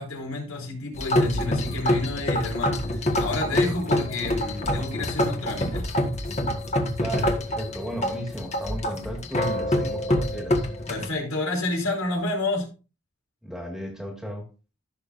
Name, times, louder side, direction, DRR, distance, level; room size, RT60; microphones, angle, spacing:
voice 1, 0.0-5.9 10.9-12.7, left 2 dB, 90° left, 4.8 m, -30 dB
sound 1, 0.9-11.0, left 1 dB, 30° left, 1.7 m, -26 dB
voice 2, 7.0-10.7 13.4-14.5, equal, ahead, 2.0 m, -34 dB
15.5 x 7.0 x 2.6 m
head